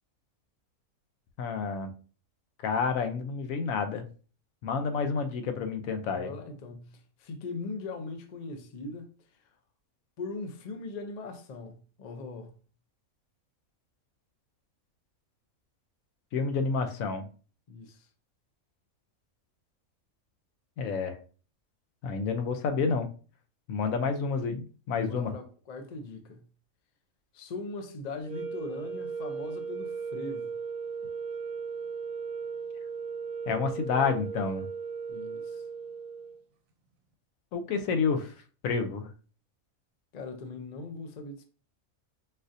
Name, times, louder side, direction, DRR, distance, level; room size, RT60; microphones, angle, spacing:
voice 1, 1.4-1.9 2.6-4.0 4.6-6.3 16.3-17.3 20.8-21.1 22.0-23.1 23.7-25.3 33.5-34.7 37.5-38.3 38.6-39.1, left 5 dB, 80° left, 1.0 m, -29 dB
voice 2, 6.1-9.1 10.2-12.6 17.7-18.1 24.9-26.5 27.3-30.6 35.1-35.6 40.1-41.4, left 3 dB, 60° left, 0.4 m, -40 dB
sound 1, 28.2-36.4, right 5 dB, 75° right, 1.0 m, -37 dB
4.0 x 2.5 x 2.5 m
omnidirectional pair, 1.5 m